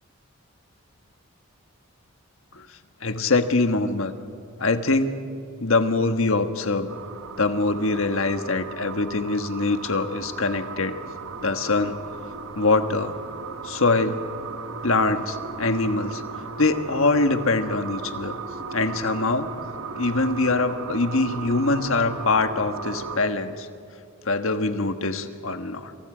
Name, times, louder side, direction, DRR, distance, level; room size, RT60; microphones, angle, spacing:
voice 1, 3.0-4.1 4.6-5.2 5.6-6.9 7.4-11.0 11.4-12.0 12.6-13.1 13.6-14.2 14.8-16.2 16.6-18.4 18.7-19.5 20.0-23.7 24.2-25.9, left 3 dB, 65° left, 8 dB, 1.4 m, -23 dB
sound 1, 6.9-23.2, right 4 dB, 70° right, 1.3 m, -36 dB
27.0 x 27.0 x 5.0 m, 2.5 s
head